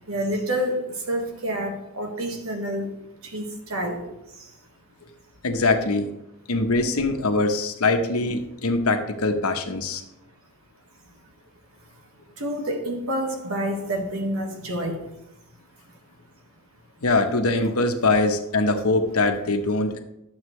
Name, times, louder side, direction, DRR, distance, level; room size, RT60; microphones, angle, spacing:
voice 1, 0.1-3.0 3.2-4.5 12.4-15.2, equal, 75° right, 1.7 m, -28 dB
voice 2, 5.4-6.1 6.5-10.0 17.0-20.0, left 2 dB, 85° left, 1.0 m, -22 dB
11.5 x 7.2 x 3.2 m
head